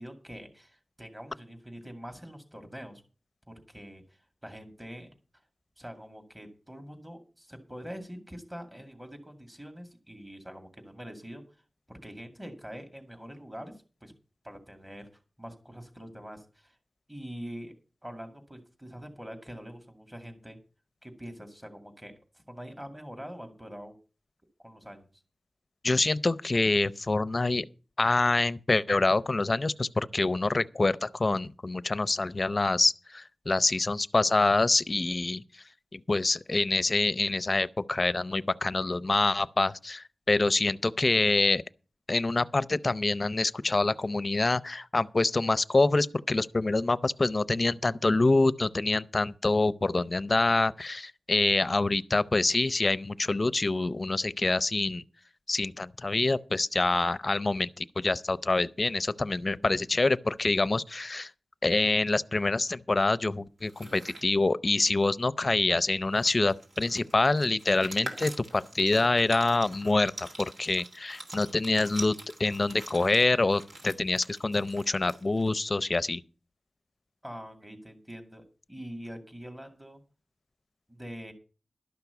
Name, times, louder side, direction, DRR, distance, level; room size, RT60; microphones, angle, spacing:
voice 1, 0.0-3.0 3.5-5.1 5.8-11.4 11.9-14.1 14.4-15.1 15.4-16.8 17.1-17.7 18.0-20.6 21.0-23.9 24.6-25.1 77.2-80.0 80.9-81.3, equal, 15° right, 2.2 m, -44 dB
voice 2, 25.8-27.7 28.0-35.4 35.9-41.6 42.1-55.0 55.5-61.3 61.6-76.2, left 2 dB, 35° left, 0.5 m, -26 dB
sound 1, 63.6-64.3 65.7-65.8 66.0-75.6, right 1 dB, 80° right, 3.0 m, -44 dB
12.0 x 5.9 x 8.1 m
wide cardioid pair, 100°, 0 cm